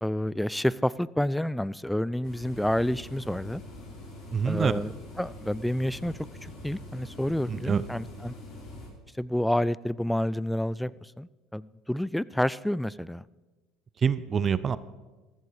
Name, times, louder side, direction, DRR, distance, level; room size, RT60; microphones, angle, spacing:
voice 1, 0.0-3.6 4.4-4.9 5.2-8.3 9.2-10.9 11.2-13.2, left 1 dB, 5° left, 21 dB, 0.4 m, -29 dB
sound 1, 2.2-8.9, left 1 dB, 50° left, 5.7 m, -44 dB
voice 2, 4.3-4.7 7.5-7.8 14.0-14.8, right 6 dB, 35° right, 16 dB, 0.6 m, -26 dB
14.5 x 12.5 x 4.9 m, 1.2 s
supercardioid pair, 100°, 0 cm